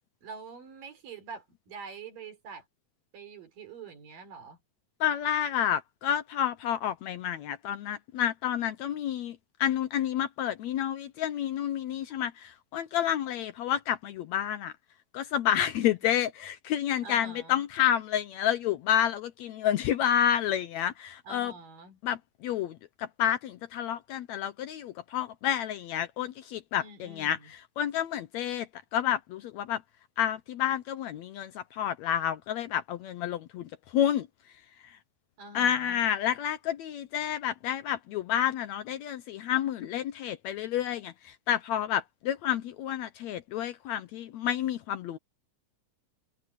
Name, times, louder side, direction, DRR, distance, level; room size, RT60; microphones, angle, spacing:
voice 1, 0.2-2.7 3.1-4.6 17.0-17.6 21.3-22.0 26.7-27.5 35.4-36.0, right 5 dB, 85° right, 5.7 m, -45 dB
voice 2, 5.0-14.7 15.1-21.5 22.0-29.8 30.2-34.3 35.5-45.2, left 10 dB, 75° left, 1.7 m, -30 dB
omnidirectional pair, 3.8 m